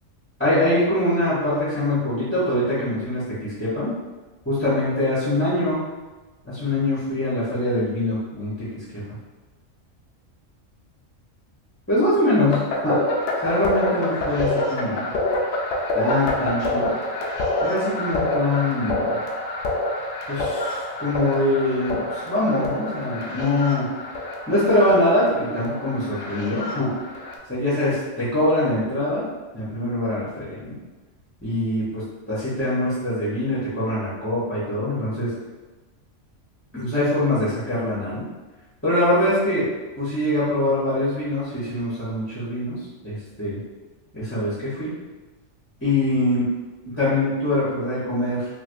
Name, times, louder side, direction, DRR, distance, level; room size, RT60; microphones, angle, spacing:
voice 1, 0.4-3.9 4.4-5.8 6.4-8.7 8.9-9.0 11.9-13.0 13.4-15.0 15.9-16.9 17.6-19.2 20.3-23.9 24.5-26.9 27.5-30.8 31.4-32.0 32.3-35.3 36.7-38.2 38.8-39.7 40.0-42.8 43.0-43.6 44.1-44.9 45.8-46.5 46.9-48.5, left 1 dB, 15° left, -10 dB, 0.7 m, -23 dB
sound 1, 12.5-27.3, left 1 dB, 65° left, 0.8 m, -27 dB
3.2 x 2.7 x 2.5 m, 1.2 s
omnidirectional pair, 1.4 m